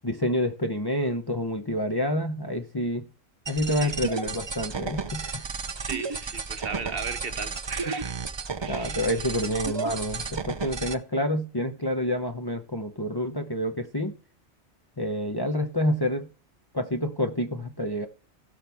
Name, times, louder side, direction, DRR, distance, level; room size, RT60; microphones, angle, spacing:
voice 1, 0.0-3.1 3.5-5.5 8.7-14.1 15.0-16.3 16.7-18.1, left 1 dB, 25° left, 0.7 m, -28 dB
sound 1, 3.5-10.9, right 5 dB, 35° right, 0.5 m, -33 dB
voice 2, 5.8-8.1 8.6-9.0, right 5 dB, 55° right, 1.0 m, -36 dB
16.5 x 5.8 x 3.5 m
omnidirectional pair, 1.2 m